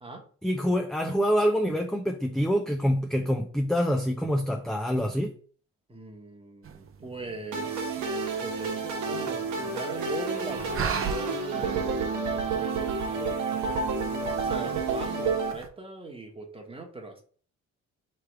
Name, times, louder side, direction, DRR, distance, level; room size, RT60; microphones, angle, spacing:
voice 1, 0.4-5.3, equal, ahead, 0.4 m, -26 dB
voice 2, 5.9-8.0 8.4-17.2, right 3 dB, 20° right, 1.2 m, -40 dB
sound 1, 6.6-15.7, right 6 dB, 45° right, 0.6 m, -40 dB
sound 2, 7.5-15.5, right 4 dB, 70° right, 1.0 m, -30 dB
3.3 x 3.3 x 4.6 m
cardioid pair, 90°, 30 cm